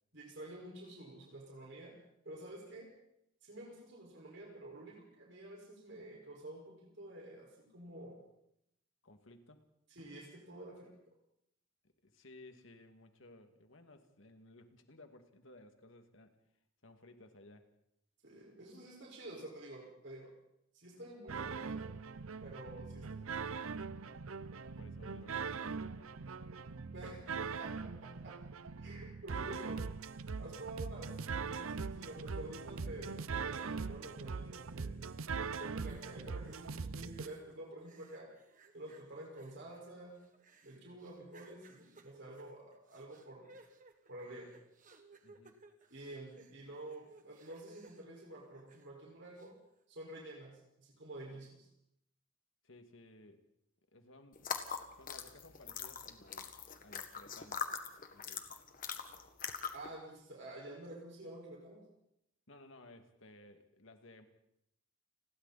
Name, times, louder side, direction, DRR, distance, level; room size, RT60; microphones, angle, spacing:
voice 1, 0.1-1.9 2.2-2.9 3.4-8.2 9.9-10.9 18.2-20.3 20.7-21.9 22.4-24.0 26.9-27.2 27.6-28.3 28.8-29.8 30.4-35.0 35.6-38.3 38.7-40.2 40.6-43.5 44.1-44.5 45.9-49.5 49.9-51.7 59.7-61.8, right 1 dB, 60° right, -1 dB, 5.3 m, -49 dB
voice 2, 9.0-9.7 12.0-16.4 16.8-17.7 24.6-26.1 45.2-45.5 52.6-53.5 53.9-54.5 55.0-57.7 58.1-58.5 62.5-64.3, left 2 dB, 65° left, 6 dB, 2.3 m, -58 dB
sound 1, 21.3-37.3, right 5 dB, 85° right, 0.7 m, -41 dB
sound 2, 35.5-37.5 37.8-49.0 49.3-49.5, right 3 dB, 40° right, 1.8 m, -62 dB
sound 3, 54.4-59.9, left 6 dB, 40° left, 1.8 m, -42 dB
30.0 x 21.5 x 4.3 m, 0.77 s
head